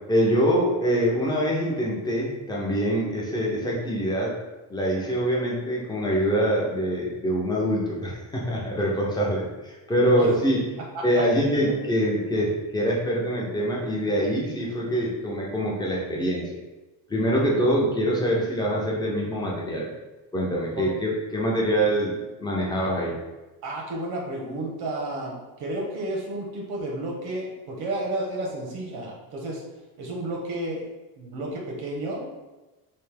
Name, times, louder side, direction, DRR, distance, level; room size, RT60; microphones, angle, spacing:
voice 1, 0.1-4.3 4.7-10.7 11.0-16.6 17.1-19.9 20.3-23.2, equal, 10° left, -4 dB, 0.5 m, -24 dB
voice 2, 10.8-11.2 20.8-20.9 23.6-29.6 30.0-30.9 31.2-32.5, right 1 dB, 70° right, -1 dB, 1.0 m, -32 dB
3.3 x 2.8 x 3.3 m, 1.1 s
cardioid pair, 175°, 39 cm